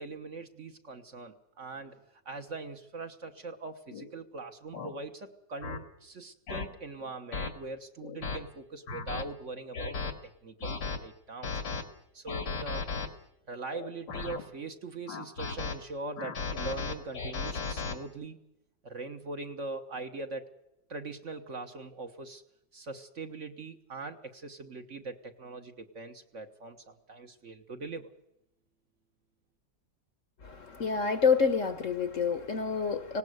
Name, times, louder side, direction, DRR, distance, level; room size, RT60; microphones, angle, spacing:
voice 1, 0.0-10.2 10.4-11.5 12.1-12.9 13.5-18.4 18.8-20.5 20.9-22.4 22.7-28.1, right 3 dB, 45° right, 1.5 m, -41 dB
sound 1, 3.9-4.1 4.7-4.9 5.6-5.8 6.5-6.7 7.3-7.5 8.0-8.4 8.9-9.2 9.7-10.1 10.6-11.0 11.4-11.8 12.3-13.1 13.7-14.4 15.1-15.8 16.2-18.0, left 4 dB, 80° left, 2.5 m, -35 dB
voice 2, 30.4-33.2, left 5 dB, 50° left, 1.3 m, -28 dB
18.5 x 18.0 x 8.0 m
omnidirectional pair, 1.9 m